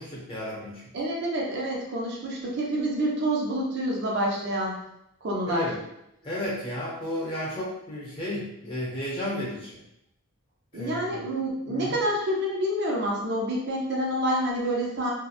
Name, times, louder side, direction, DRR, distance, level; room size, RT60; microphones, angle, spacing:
voice 1, 0.0-0.8 5.5-5.8 6.2-9.8 10.7-11.2 11.7-12.0, left 1 dB, 25° left, -6 dB, 0.8 m, -33 dB
voice 2, 0.9-4.8 5.2-5.7 10.7-15.1, right 1 dB, 50° right, -3 dB, 0.5 m, -28 dB
2.7 x 2.0 x 2.4 m, 0.81 s
head